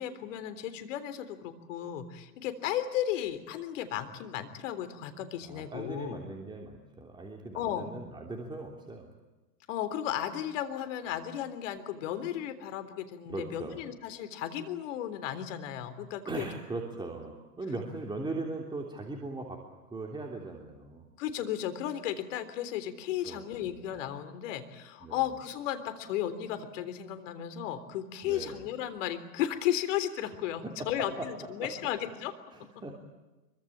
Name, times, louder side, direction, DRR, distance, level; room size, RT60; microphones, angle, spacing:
voice 1, 0.0-6.2 7.5-7.9 9.7-16.5 21.2-32.3, left 11 dB, 50° left, 11 dB, 3.7 m, -34 dB
voice 2, 5.5-9.1 13.3-13.8 16.3-19.6 19.9-21.0 23.2-23.4 25.0-25.2 28.2-28.6 30.6-31.3 31.6-31.7 32.5-33.0, right 2 dB, 10° right, 1 dB, 3.2 m, -39 dB
25.5 x 24.0 x 8.8 m, 1.1 s
hypercardioid pair, 115°, 47 cm